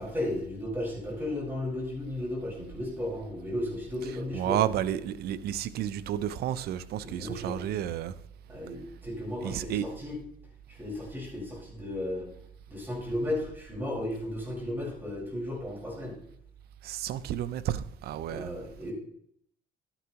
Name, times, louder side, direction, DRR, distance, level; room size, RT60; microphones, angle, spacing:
voice 1, 0.0-4.6 7.0-7.6 8.5-10.2 10.8-12.3 12.7-16.2 18.3-18.9, left 1 dB, 10° right, 4.8 m, -34 dB
voice 2, 4.3-8.2 9.4-9.9 16.8-18.5, right 11 dB, 70° right, 0.6 m, -31 dB
12.0 x 9.9 x 2.9 m
cardioid pair, 110°, 17 cm